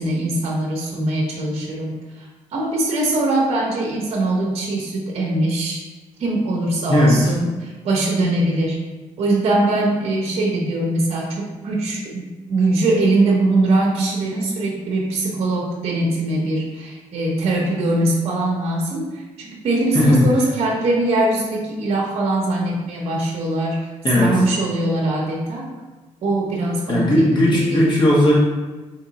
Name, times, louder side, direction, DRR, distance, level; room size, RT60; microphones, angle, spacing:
voice 1, 0.0-5.8 6.2-8.8 9.2-25.7 26.2-27.9, right 2 dB, 55° right, -2 dB, 0.8 m, -22 dB
voice 2, 19.9-20.3 24.0-24.3 26.9-28.3, left 1 dB, 35° left, -5 dB, 1.3 m, -16 dB
3.6 x 2.9 x 4.0 m, 1.2 s
cardioid pair, 135°, 13 cm